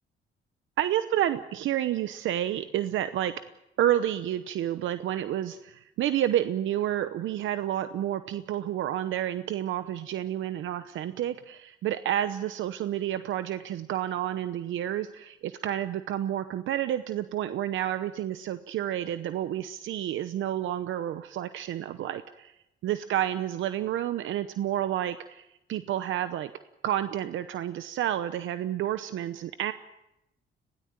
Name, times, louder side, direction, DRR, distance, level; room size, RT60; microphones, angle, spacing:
voice 1, 0.8-3.3 3.8-22.5 22.8-26.5 26.8-29.7, right 11 dB, 75° right, 11 dB, 0.9 m, -30 dB
21.5 x 17.0 x 9.1 m, 0.89 s
cardioid pair, 90°, 20 cm